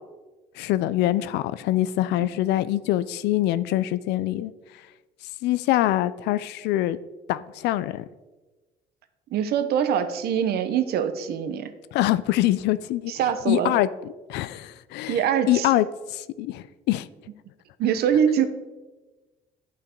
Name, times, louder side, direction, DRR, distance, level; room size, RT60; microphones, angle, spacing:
voice 1, 0.6-4.5 5.4-7.0 7.3-8.0 11.9-13.1 13.5-13.9 14.3-15.2 15.5-15.8 16.1-17.1, left 15 dB, 85° left, 0.5 m, -24 dB
voice 2, 9.3-11.7 13.1-13.8 15.1-15.7 17.8-18.4, right 8 dB, 70° right, 0.9 m, -23 dB
11.0 x 5.8 x 4.5 m
cardioid pair, 110°, 17 cm